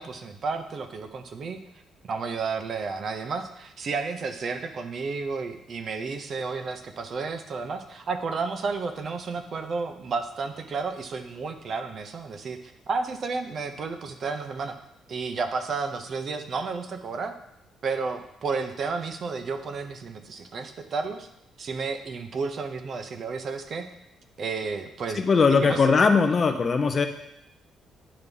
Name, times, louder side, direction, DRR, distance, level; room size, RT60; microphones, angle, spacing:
voice 1, 0.0-1.6 2.0-14.8 15.1-17.3 17.8-21.3 21.6-23.9 24.4-25.2 25.6-25.8, right 4 dB, 40° right, 8 dB, 0.6 m, -32 dB
voice 2, 25.1-27.1, left 5 dB, 30° left, 6 dB, 0.6 m, -20 dB
9.8 x 3.5 x 5.3 m, 0.80 s
cardioid pair, 160°, 0 cm